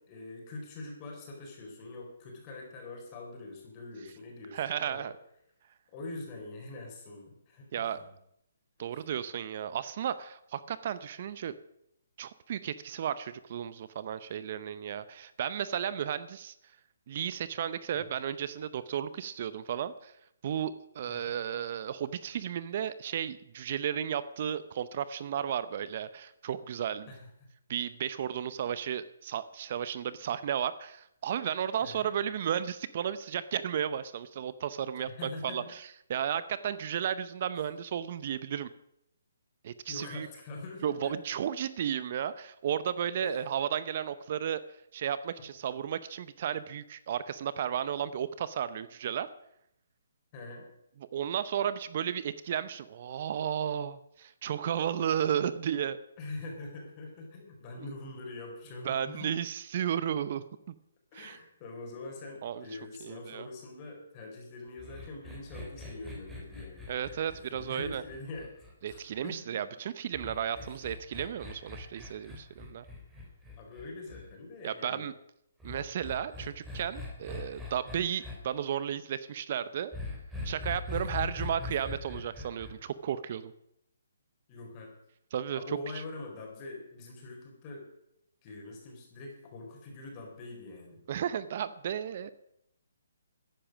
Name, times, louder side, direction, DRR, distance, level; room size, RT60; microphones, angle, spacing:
voice 1, 0.1-5.1 5.9-8.1 8.9-9.0 17.9-18.2 21.1-21.3 27.1-27.3 31.8-32.1 35.0-35.7 37.6-37.7 39.9-41.2 43.2-43.5 50.3-50.7 56.2-59.3 61.1-66.9 67.3-68.6 68.8-69.8 70.7-70.8 73.6-75.1 80.9-81.5 84.5-84.9 85.5-87.9 88.4-91.0, left 2 dB, 30° left, 0 dB, 4.6 m, -44 dB
voice 2, 4.5-5.1 7.7-8.0 8.8-11.5 12.2-16.5 17.1-20.1 20.4-27.1 27.7-38.7 39.6-40.3 40.8-44.6 44.9-49.3 51.1-56.0 58.8-60.4 61.1-61.4 62.4-62.6 63.0-63.5 66.9-68.0 68.8-72.8 74.6-75.1 75.6-79.9 80.4-83.5 85.3-85.6 91.1-92.3, right 9 dB, 45° right, 14 dB, 0.7 m, -33 dB
sound 1, 64.8-69.2 70.1-74.3 75.6-78.4 79.9-82.7, left 2 dB, 5° right, 3.6 m, -41 dB
14.5 x 10.5 x 6.2 m, 0.79 s
hypercardioid pair, 145°, 0 cm